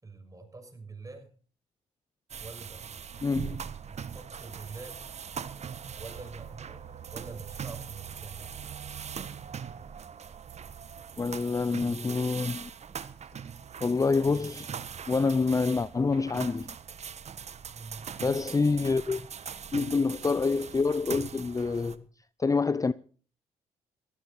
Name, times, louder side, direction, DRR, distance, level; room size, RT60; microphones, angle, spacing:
voice 1, 0.0-1.3 2.4-2.9 3.6-5.0 5.9-8.4 17.7-18.1, right 3 dB, 25° right, 6.3 m, -46 dB
sound 1, 2.3-21.9, right 7 dB, 50° right, 1.4 m, -41 dB
voice 2, 3.2-3.6 11.2-12.7 13.8-14.7 15.1-16.7 18.2-19.2 19.7-22.0 22.4-22.9, left 4 dB, 25° left, 0.6 m, -27 dB
16.5 x 14.0 x 4.3 m
hypercardioid pair, 50°, 15 cm